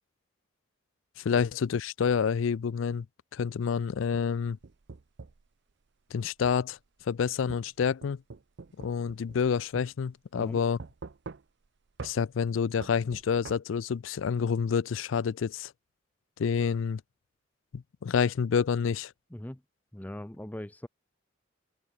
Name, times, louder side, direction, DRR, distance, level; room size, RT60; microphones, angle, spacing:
voice 1, 1.2-3.1 3.3-4.6 6.1-6.8 7.1-8.2 8.8-10.8 12.0-15.7 16.4-17.0 17.7-19.1, left 6 dB, 80° left, 0.4 m, -28 dB
sound 1, 3.9-5.5 6.4-6.6 7.5-9.5 9.8-9.9 10.8-11.7 12.0-12.2 12.8-13.6, right 4 dB, 60° right, 0.6 m, -44 dB
voice 2, 19.3-19.6 19.9-20.9, left 1 dB, 10° left, 0.6 m, -40 dB
head